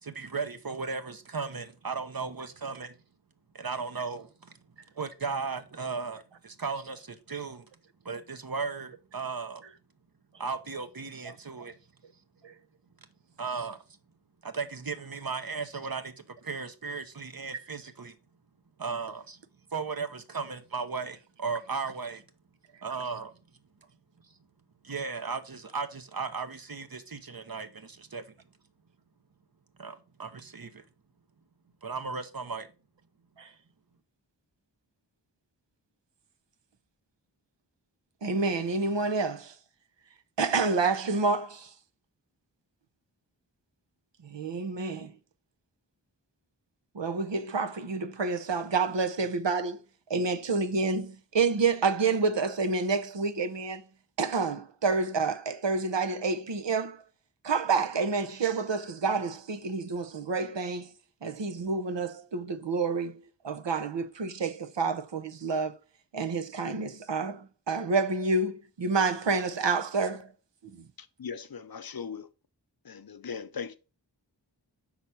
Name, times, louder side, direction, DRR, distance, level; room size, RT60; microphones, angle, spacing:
voice 1, 0.0-3.0 3.5-4.5 5.0-7.7 8.0-9.6 10.4-11.7 13.4-13.8 14.4-18.2 18.8-19.4 19.7-22.2 22.8-23.3 24.8-28.2 29.8-30.8 31.8-32.7, right 4 dB, 55° right, 0.9 m, -36 dB
voice 2, 38.2-39.5 40.4-41.7 44.3-45.1 46.9-49.8 50.1-53.8 54.2-57.0 57.4-60.9 61.2-63.2 63.4-65.8 66.1-70.2, right 4 dB, 80° right, 0.8 m, -28 dB
voice 3, 71.2-72.3 72.9-73.8, left 6 dB, 55° left, 0.6 m, -38 dB
5.6 x 4.0 x 6.0 m
wide cardioid pair, 40°, 43 cm